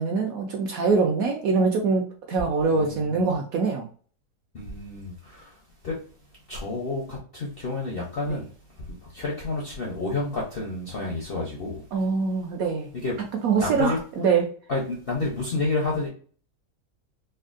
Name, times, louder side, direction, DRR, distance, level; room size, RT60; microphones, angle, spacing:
voice 1, 0.0-3.9 8.3-8.4 11.9-12.9 13.4-14.5, right 4 dB, 70° right, 0.9 m, -24 dB
voice 2, 2.7-3.1 4.5-5.5 5.8-6.0 6.5-8.5 8.8-12.1 13.0-13.1 13.5-14.0 14.7-16.1, left 2 dB, 60° left, 0.6 m, -30 dB
3.4 x 2.2 x 2.4 m
omnidirectional pair, 1.9 m